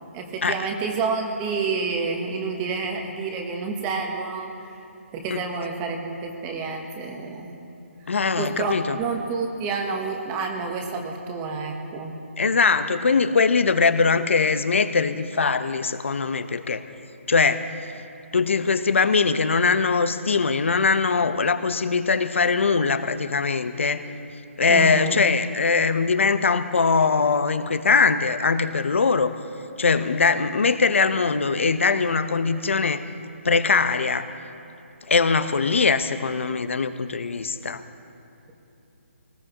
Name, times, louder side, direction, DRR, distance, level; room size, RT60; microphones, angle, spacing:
voice 1, 0.1-4.8 5.1-7.6 8.4-12.2 24.7-25.2, right 4 dB, 15° right, 3 dB, 1.0 m, -29 dB
voice 2, 8.1-9.0 12.4-16.8 17.3-17.6 18.3-24.0 24.6-29.4 29.8-33.0 33.4-34.3 35.1-37.8, left 4 dB, 65° left, 11 dB, 0.9 m, -21 dB
21.0 x 19.0 x 3.0 m, 2.9 s
hypercardioid pair, 170°, 7 cm